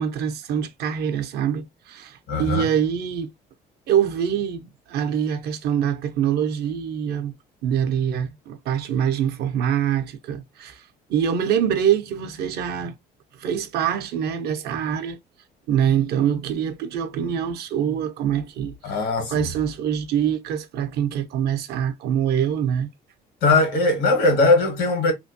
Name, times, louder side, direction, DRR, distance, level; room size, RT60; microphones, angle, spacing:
voice 1, 0.0-3.3 3.9-7.3 7.6-10.8 11.1-13.0 13.4-15.2 15.7-19.0 19.3-22.9, right 9 dB, 70° right, 0.6 m, -24 dB
voice 2, 2.3-2.7 18.8-19.5 23.4-25.1, left 2 dB, 90° left, 1.5 m, -20 dB
3.0 x 2.4 x 2.7 m
cardioid pair, 110°, 17 cm